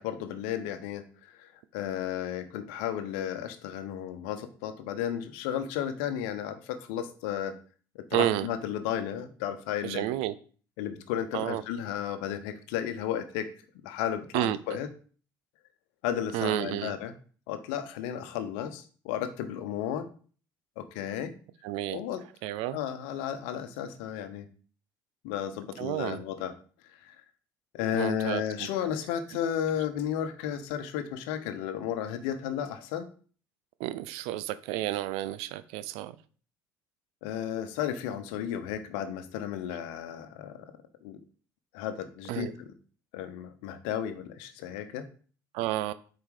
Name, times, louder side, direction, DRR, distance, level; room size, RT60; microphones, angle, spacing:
voice 1, 0.0-7.5 7.9-10.1 10.8-13.5 13.8-14.9 16.0-17.1 17.5-20.1 20.8-21.3 21.9-22.2 22.7-24.5 25.2-26.5 27.0-27.1 27.7-33.1 37.2-40.6 41.0-41.2 41.7-42.7 43.1-45.0, left 10 dB, 65° left, 1.0 m, -33 dB
voice 2, 8.1-8.5 9.8-10.3 11.3-11.6 14.3-14.6 16.3-16.9 21.6-22.0 22.4-22.8 25.8-26.2 27.9-28.7 33.8-36.1 42.3-42.5 45.5-45.9, right 14 dB, 65° right, 0.6 m, -30 dB
8.0 x 4.8 x 4.9 m
hypercardioid pair, 60°, 11 cm